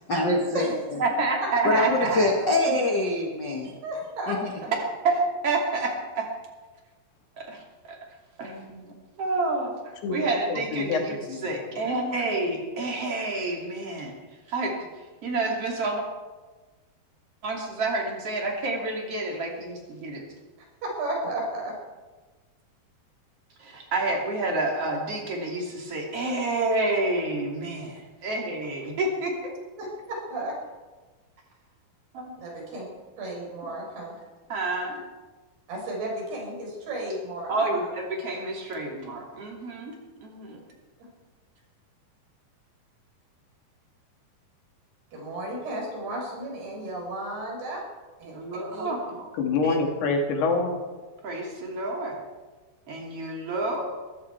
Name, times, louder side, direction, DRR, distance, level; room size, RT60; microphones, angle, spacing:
voice 1, 0.1-1.0 1.6-3.7 4.3-4.5, left 2 dB, 50° left, -1 dB, 1.3 m, -24 dB
voice 2, 1.0-2.3 4.7-6.3 7.4-7.6 7.9-8.0 8.4-9.8 10.1-11.2 11.4-14.1 14.5-14.7 15.2-16.0 17.4-20.2 23.6-27.8 28.2-29.5 32.1-32.3 34.5-35.0 37.5-39.9 40.2-40.6 48.2-49.3 49.6-49.8 51.2-52.2 52.9-53.9, right 2 dB, 40° right, 0 dB, 3.4 m, -29 dB
voice 3, 3.8-4.4 20.8-21.7 29.8-30.5 32.4-32.9 33.2-34.1 35.7-37.9 40.5-40.6 45.1-47.8 48.2-48.4 48.7-49.0, right 1 dB, 85° right, -1 dB, 6.9 m, -33 dB
voice 4, 10.0-11.0 11.3-11.8 49.4-50.8, left 3 dB, 90° left, 2 dB, 4.2 m, -26 dB
22.0 x 14.5 x 4.6 m, 1.3 s
omnidirectional pair, 4.5 m